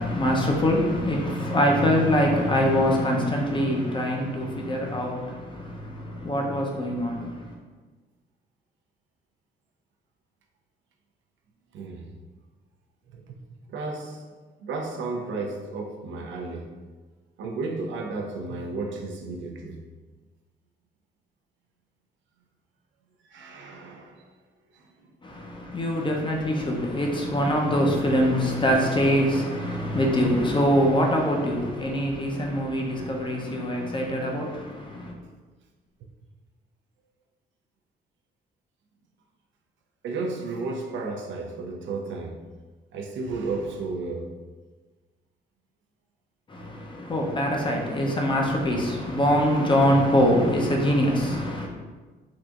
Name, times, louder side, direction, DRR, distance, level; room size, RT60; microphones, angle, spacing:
voice 1, 0.0-7.5 25.2-35.1 46.5-51.7, equal, 25° left, 0.6 m, -24 dB
voice 2, 11.7-12.1 13.1-13.4 13.7-14.3 14.6-16.8 17.4-19.8 23.3-24.3 24.7-25.1 40.0-42.5 42.9-44.4, right 3 dB, 70° right, 0.5 m, -33 dB
3.5 x 2.6 x 2.4 m
cardioid pair, 90°, 20 cm